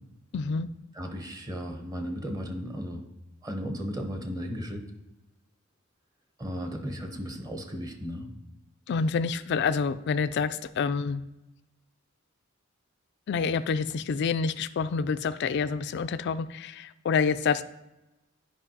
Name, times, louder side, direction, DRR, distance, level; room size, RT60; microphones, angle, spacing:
voice 1, 0.3-0.7 8.9-11.2 13.3-17.6, left 5 dB, 55° left, 13 dB, 0.3 m, -27 dB
voice 2, 0.9-3.1 3.4-4.8 6.4-8.3, equal, 20° right, 4 dB, 0.8 m, -35 dB
10.0 x 5.2 x 2.8 m, 0.98 s
head